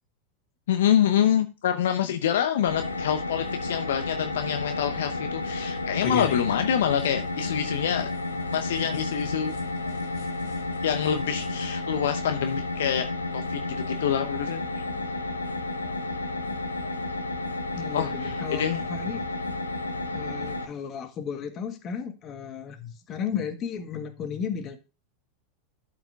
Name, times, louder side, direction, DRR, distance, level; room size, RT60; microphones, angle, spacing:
voice 1, 0.7-8.1 8.5-9.5 10.8-13.1 13.3-13.6 14.0-14.6 17.9-18.8, left 9 dB, 70° left, 0.7 m, -26 dB
sound 1, 2.6-20.7, left 2 dB, 90° left, 1.0 m, -32 dB
sound 2, 6.0-11.7, left 5 dB, 55° left, 2.3 m, -41 dB
voice 2, 17.7-19.2 20.1-24.8, left 7 dB, 35° left, 1.6 m, -34 dB
12.0 x 5.0 x 3.4 m
hypercardioid pair, 90°, 0 cm